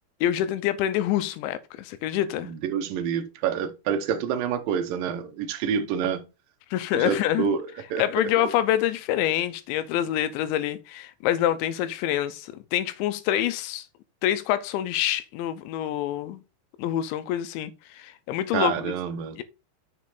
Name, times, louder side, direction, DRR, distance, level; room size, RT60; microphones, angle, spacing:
voice 1, 0.2-2.5 6.7-7.5 8.0-13.8 14.2-16.4 16.8-18.9 19.4-19.5, left 12 dB, 85° left, 3.0 m, -26 dB
voice 2, 2.6-6.2 6.9-7.6 7.9-8.0 18.5-19.4, right 8 dB, 80° right, 2.0 m, -27 dB
6.9 x 5.3 x 4.9 m
omnidirectional pair, 5.2 m